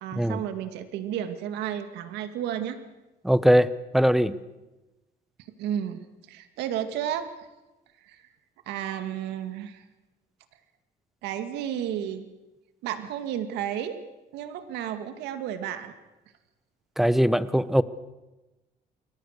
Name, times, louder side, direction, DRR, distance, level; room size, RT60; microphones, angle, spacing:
voice 1, 0.0-2.8 5.6-7.3 8.0-8.2 8.7-9.8 11.2-12.3 12.8-14.0 14.3-15.9, right 10 dB, 85° right, 9 dB, 2.2 m, -32 dB
voice 2, 3.2-4.4 17.0-17.8, equal, ahead, 15 dB, 1.0 m, -21 dB
29.0 x 23.0 x 6.7 m, 1.1 s
cardioid pair, 110°, 17 cm